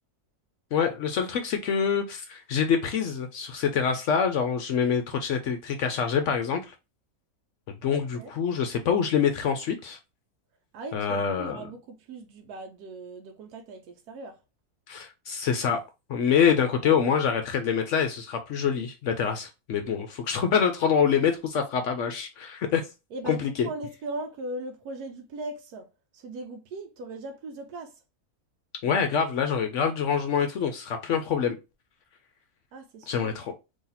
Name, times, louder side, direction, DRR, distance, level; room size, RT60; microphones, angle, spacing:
voice 1, 0.7-6.7 7.8-10.0 10.9-11.6 14.9-15.8 16.1-22.8 23.2-23.7 28.8-31.6 33.1-33.5, left 7 dB, 65° left, 0.8 m, -26 dB
voice 2, 7.9-8.3 10.7-14.4 16.3-16.9 23.1-25.9 26.1-27.9 32.7-33.3, right 2 dB, 85° right, 1.2 m, -39 dB
3.0 x 2.8 x 3.9 m
omnidirectional pair, 1.6 m